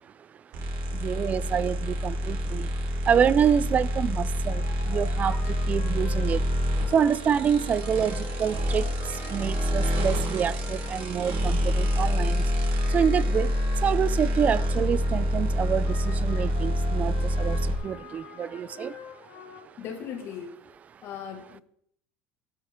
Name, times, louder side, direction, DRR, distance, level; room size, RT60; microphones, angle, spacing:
sound 1, 0.5-17.7, equal, 55° right, 4.3 m, -27 dB
voice 1, 1.0-2.7 3.1-4.6 4.9-5.4 5.7-6.4 6.9-8.8 9.3-12.4 12.9-13.5 13.8-17.6 17.8-18.9, right 8 dB, 25° right, 0.4 m, -26 dB
sound 2, 4.5-19.6, left 7 dB, 70° left, 4.3 m, -46 dB
voice 2, 19.8-20.5 21.0-21.6, left 8 dB, 45° left, 2.0 m, -37 dB
18.0 x 12.5 x 3.7 m
cardioid pair, 150°, 6 cm